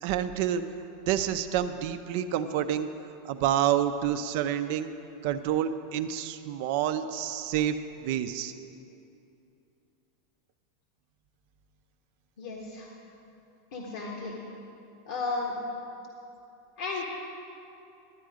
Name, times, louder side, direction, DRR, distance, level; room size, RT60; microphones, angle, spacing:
voice 1, 0.0-0.6 1.1-2.9 3.2-4.9 5.2-8.5, right 10 dB, 60° right, 9 dB, 0.6 m, -28 dB
voice 2, 12.4-12.9 13.7-14.3 15.1-15.5 16.8-17.0, left 3 dB, 70° left, -2 dB, 1.6 m, -33 dB
12.0 x 9.2 x 5.0 m, 2.7 s
hypercardioid pair, 110°, 0 cm